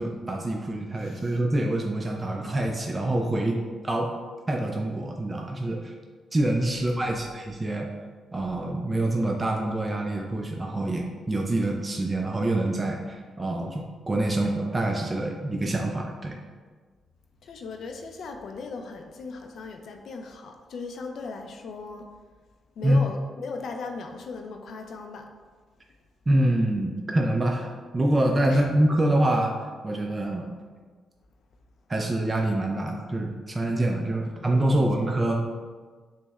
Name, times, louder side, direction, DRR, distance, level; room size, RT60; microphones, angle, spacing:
voice 1, 0.0-4.1 4.5-5.9 6.3-7.9 8.3-16.4 22.8-23.0 26.3-27.7 27.9-29.5 29.8-30.5 31.9-35.4, right 1 dB, 25° right, 1 dB, 0.4 m, -26 dB
voice 2, 1.0-1.4 6.7-7.3 17.4-22.1 22.8-25.3 28.4-28.7 34.2-35.1, left 4 dB, 65° left, 4 dB, 0.4 m, -38 dB
6.1 x 2.1 x 2.3 m, 1.5 s
cardioid pair, 90°, 0 cm